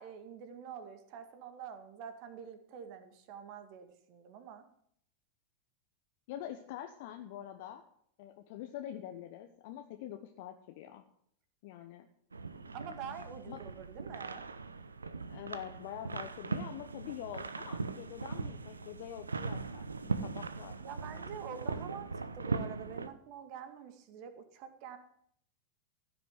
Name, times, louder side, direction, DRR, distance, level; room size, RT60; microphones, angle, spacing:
voice 1, 0.0-4.6 12.7-14.5 20.8-25.0, right 7 dB, 45° right, 9 dB, 2.0 m, -46 dB
voice 2, 6.3-7.8 8.2-11.0 11.6-12.1 13.4-13.6 15.3-20.8 21.1-21.2, left 11 dB, 50° left, 5 dB, 1.1 m, -45 dB
sound 1, 12.3-23.1, right 4 dB, 75° right, 0.8 m, -39 dB
15.5 x 6.6 x 9.5 m, 0.68 s
figure-of-eight pair, 90°, 0 cm